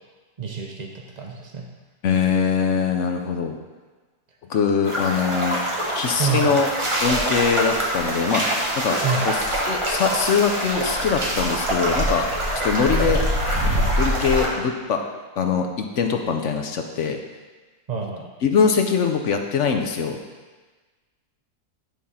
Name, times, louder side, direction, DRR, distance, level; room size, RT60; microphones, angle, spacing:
voice 1, 0.4-1.7 5.2-5.3 6.2-6.6 9.0-9.3 17.9-18.3, right 5 dB, 60° right, 0 dB, 0.4 m, -28 dB
voice 2, 2.0-3.5 4.5-5.6 6.0-6.7 7.0-8.5 8.8-9.0 9.2-9.4 9.7-12.3 12.6-13.3 14.0-15.0 15.4-17.2 18.4-20.2, left 6 dB, 60° left, 4 dB, 0.8 m, -22 dB
sound 1, 4.8-14.5, right 1 dB, 20° right, 1.1 m, -24 dB
10.5 x 3.6 x 5.5 m, 1.3 s
omnidirectional pair, 1.7 m